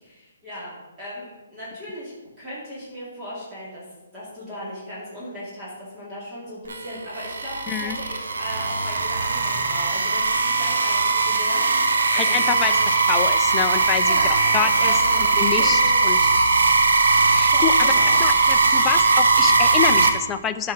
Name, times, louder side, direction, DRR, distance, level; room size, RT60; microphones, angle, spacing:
voice 1, 0.0-3.8 4.1-12.8 14.1-15.2 15.6-15.9 17.5-18.2, equal, 15° right, -9 dB, 2.6 m, -37 dB
sound 1, 6.7-20.1, right 3 dB, 80° right, 1.2 m, -19 dB
voice 2, 7.7-8.0 12.1-12.7 13.1-14.2 14.5-14.9 15.4-16.2 17.3-17.9 18.2-20.7, left 8 dB, 15° left, 8 dB, 0.4 m, -26 dB
10.0 x 4.8 x 6.1 m, 1.1 s
hypercardioid pair, 160°, 0 cm